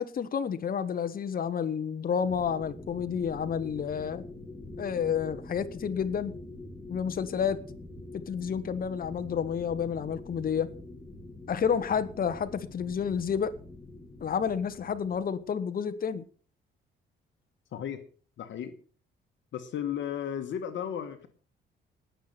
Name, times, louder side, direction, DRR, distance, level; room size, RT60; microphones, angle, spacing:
voice 1, 0.0-4.2 4.8-6.3 6.9-7.6 8.3-10.7 11.5-13.5 14.2-16.2, left 7 dB, 45° left, 11 dB, 1.2 m, -30 dB
sound 1, 2.2-15.5, left 2 dB, 20° left, 5.0 m, -45 dB
voice 2, 17.7-18.0 18.4-18.8 19.5-21.3, left 9 dB, 70° left, 7 dB, 1.6 m, -34 dB
18.5 x 6.8 x 5.9 m, 0.41 s
cardioid pair, 90°, 20 cm